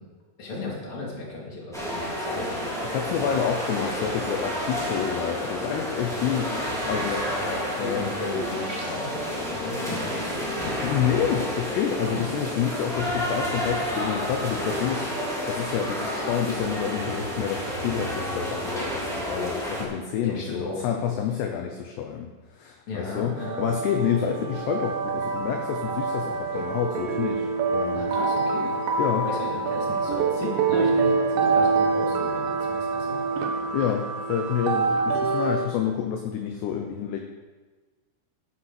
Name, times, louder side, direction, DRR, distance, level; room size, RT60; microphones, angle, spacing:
voice 1, 0.4-2.7 6.5-10.9 12.1-12.3 20.2-20.8 22.9-23.7 27.9-28.7 29.2-33.1, left 2 dB, 35° left, -4 dB, 3.2 m, -35 dB
sound 1, 1.7-19.8, equal, ahead, 1.5 m, -30 dB
voice 2, 2.8-6.6 6.9-7.4 7.8-8.2 10.7-28.2 29.0-29.3 33.7-37.2, left 8 dB, 75° left, 3 dB, 2.7 m, -28 dB
sound 2, 8.1-9.4, right 3 dB, 50° right, 2.1 m, -43 dB
sound 3, 23.4-35.7, right 4 dB, 75° right, 2.1 m, -26 dB
11.5 x 8.0 x 5.9 m, 1.3 s
omnidirectional pair, 5.4 m